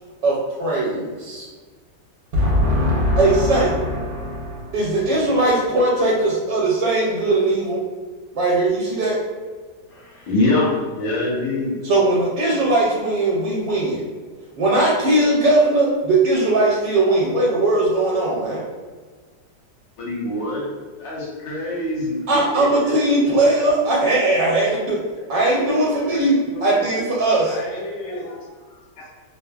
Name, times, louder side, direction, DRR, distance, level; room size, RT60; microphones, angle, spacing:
voice 1, 0.2-1.5 2.3-7.8 8.3-9.2 11.8-14.0 14.6-18.6 22.3-25.0 25.3-27.6, right 2 dB, 80° right, -5 dB, 1.2 m, -19 dB
voice 2, 9.9-11.8 20.0-20.7 21.0-22.9, left 2 dB, 85° left, -4 dB, 1.5 m, -24 dB
voice 3, 25.2-26.9 27.4-29.1, left 1 dB, 65° left, -3 dB, 0.9 m, -35 dB
3.3 x 2.0 x 2.2 m, 1.4 s
omnidirectional pair, 1.9 m